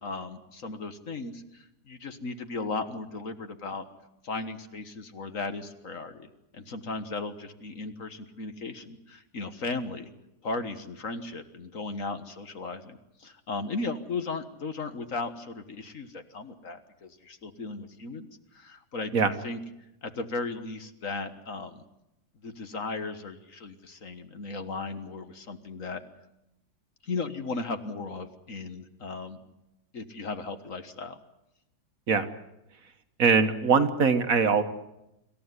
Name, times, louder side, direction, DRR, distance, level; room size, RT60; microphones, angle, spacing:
voice 1, 0.0-3.9 4.2-10.1 10.4-18.3 18.5-19.6 20.0-21.8 22.4-26.0 27.0-29.4 29.9-31.2, left 3 dB, 50° left, 9 dB, 1.8 m, -36 dB
voice 2, 33.2-34.6, right 5 dB, 55° right, 9 dB, 1.6 m, -22 dB
26.5 x 14.5 x 9.7 m, 0.88 s
omnidirectional pair, 1.8 m